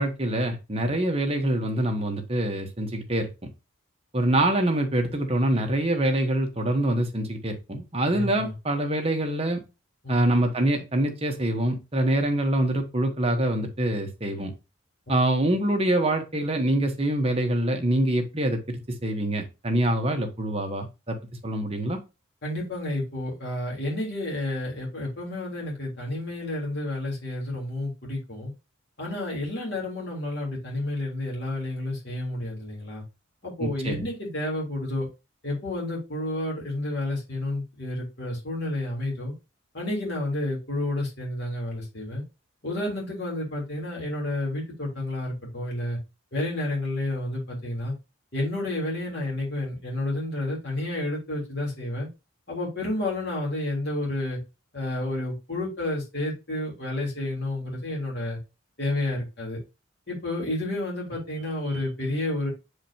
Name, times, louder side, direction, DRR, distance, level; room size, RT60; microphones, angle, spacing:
voice 1, 0.0-3.3 4.1-9.6 10.1-14.5 15.1-21.2 21.4-22.0 33.6-34.1, right 1 dB, 25° right, 1.1 m, -25 dB
voice 2, 8.1-8.5 10.0-10.3 22.4-28.5 29.0-33.0 33.4-35.1 35.4-39.3 39.7-42.2 42.6-46.0 46.3-47.9 48.3-52.1 52.5-54.4 54.7-58.4 58.8-59.6 60.1-62.5, left 1 dB, 50° left, 3.4 m, -30 dB
7.4 x 5.0 x 2.8 m
head